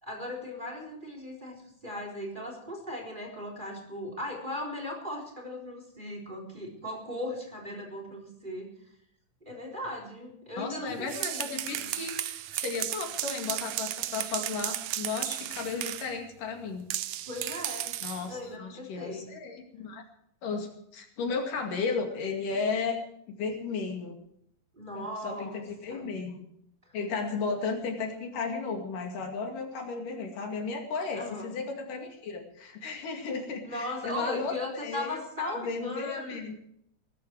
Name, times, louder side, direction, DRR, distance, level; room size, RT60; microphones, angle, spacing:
voice 1, 0.0-8.7 9.4-11.9 17.3-17.9 18.2-19.3 22.5-22.7 24.7-26.2 26.8-26.9 31.1-31.5 33.6-36.4, left 1 dB, 15° right, 1 dB, 4.1 m, -38 dB
voice 2, 10.6-16.9 18.0-20.0 20.4-23.0 23.3-24.2 24.9-26.4 26.9-36.6, left 4 dB, 75° left, 3 dB, 3.9 m, -34 dB
sound 1, 10.9-16.1 16.9-18.3, right 13 dB, 85° right, 1.4 m, -34 dB
18.5 x 14.5 x 4.7 m, 0.72 s
omnidirectional pair, 3.8 m